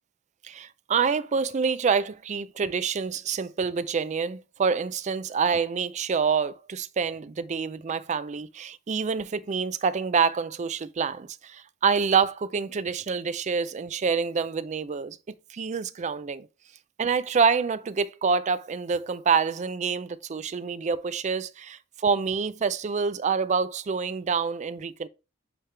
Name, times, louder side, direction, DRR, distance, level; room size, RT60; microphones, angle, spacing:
voice 1, 0.4-16.5 17.0-25.1, right 5 dB, 35° right, 0.4 m, -27 dB
8.7 x 3.4 x 3.3 m
head